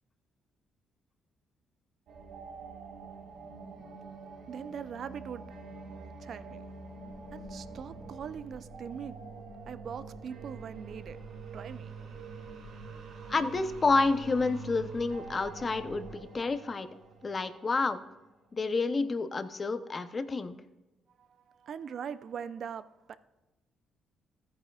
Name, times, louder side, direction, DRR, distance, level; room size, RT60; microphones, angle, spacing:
sound 1, 2.1-18.3, right 4 dB, 80° right, 1.6 m, -46 dB
voice 1, 4.4-5.4 6.2-11.2 11.5-11.9 21.2-23.2, right 7 dB, 60° right, 14 dB, 0.5 m, -42 dB
voice 2, 13.3-16.9 17.2-18.0 18.5-20.5, left 3 dB, 35° left, 10 dB, 0.7 m, -29 dB
14.5 x 9.2 x 2.4 m, 1.1 s
cardioid pair, 90°, 0 cm